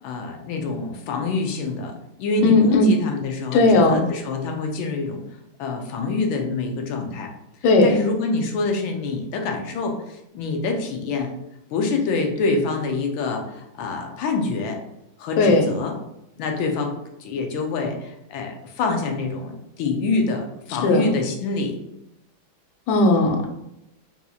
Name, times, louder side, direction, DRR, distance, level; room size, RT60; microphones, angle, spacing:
voice 1, 0.0-1.9 2.2-5.2 5.6-7.3 7.8-11.3 11.7-14.8 15.2-16.0 16.4-21.8, left 3 dB, 90° left, 3 dB, 1.4 m, -26 dB
voice 2, 2.4-2.9 3.5-4.0 7.6-7.9 15.4-15.7 20.8-21.1 22.9-23.5, left 2 dB, 70° left, 2 dB, 1.0 m, -16 dB
4.1 x 2.8 x 2.3 m, 0.85 s
omnidirectional pair, 2.2 m